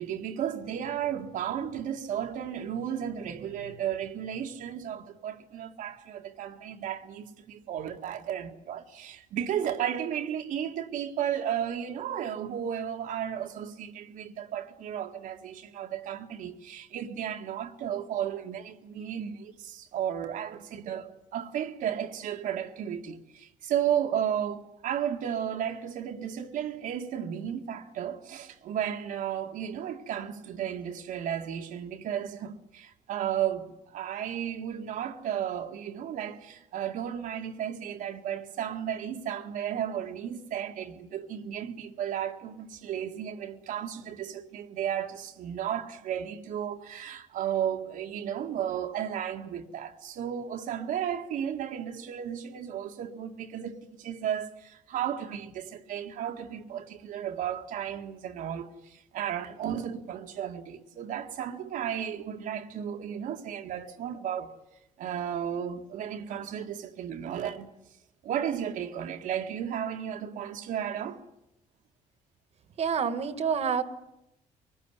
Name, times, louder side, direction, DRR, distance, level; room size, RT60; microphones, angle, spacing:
voice 1, 0.0-64.5 65.0-67.7 68.2-71.2, right 9 dB, 75° right, 1.9 m, -34 dB
voice 2, 72.8-73.8, right 7 dB, 50° right, 1.7 m, -27 dB
23.5 x 19.0 x 9.9 m
cardioid pair, 125°, 14 cm